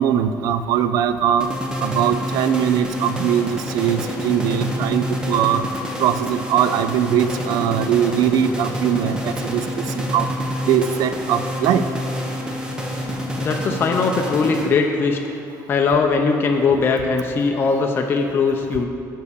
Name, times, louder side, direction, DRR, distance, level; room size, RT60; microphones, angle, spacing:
voice 1, 0.0-1.5 1.8-5.6 6.0-10.3 10.7-11.9, right 9 dB, 70° right, 11 dB, 0.4 m, -21 dB
sound 1, 1.4-15.0, equal, 10° right, 1.0 m, -28 dB
voice 2, 13.4-15.2 15.7-18.9, left 4 dB, 35° left, 2 dB, 0.6 m, -20 dB
7.2 x 5.6 x 6.8 m, 2.5 s
cardioid pair, 155°, 7 cm